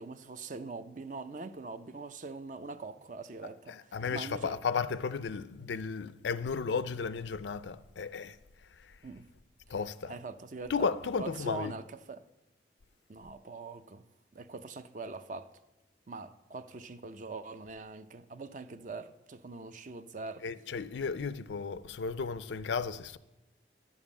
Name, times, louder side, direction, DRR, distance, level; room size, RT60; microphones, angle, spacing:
voice 1, 0.0-4.6 9.0-9.3 10.1-10.9 11.2-12.2 13.1-14.0 14.3-15.5 16.1-20.4, right 3 dB, 45° right, 0.5 m, -43 dB
voice 2, 3.7-8.4 9.7-10.1 10.7-11.7 20.4-23.2, left 5 dB, 90° left, 0.5 m, -34 dB
11.0 x 7.2 x 7.2 m
head